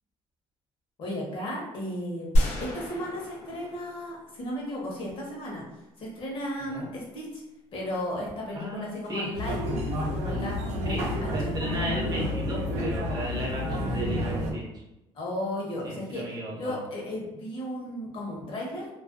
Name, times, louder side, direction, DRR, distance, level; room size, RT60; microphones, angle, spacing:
voice 1, 1.0-5.6 6.0-7.4 7.7-9.6 10.2-11.1 11.4-11.5 15.1-16.2 16.5-18.9, left 1 dB, 50° left, -3 dB, 0.8 m, -35 dB
sound 1, 2.3-4.7, equal, 90° left, 0.5 m, -28 dB
voice 2, 8.6-9.3 10.9-11.1 11.3-14.7 15.8-16.8, equal, 35° right, -2 dB, 0.6 m, -35 dB
sound 2, 9.3-14.5, left 1 dB, 90° right, 0.5 m, -30 dB
2.4 x 2.1 x 2.5 m, 0.92 s
cardioid pair, 135°, 11 cm